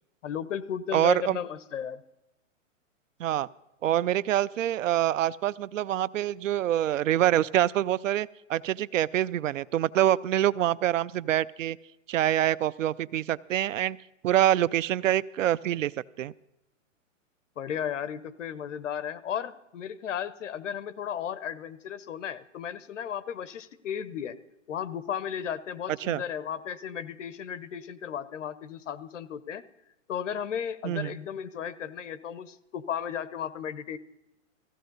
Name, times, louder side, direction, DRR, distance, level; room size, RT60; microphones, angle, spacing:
voice 1, 0.2-2.0 17.6-24.4 24.7-29.6 30.1-34.0, left 8 dB, 65° left, 16 dB, 1.0 m, -34 dB
voice 2, 0.9-1.4 3.2-3.5 3.8-11.8 12.1-14.0 14.2-15.9 16.2-16.3 26.0-26.2 30.8-31.2, right 12 dB, 70° right, 21 dB, 0.6 m, -25 dB
16.5 x 15.5 x 3.9 m, 0.93 s
hypercardioid pair, 160°, 39 cm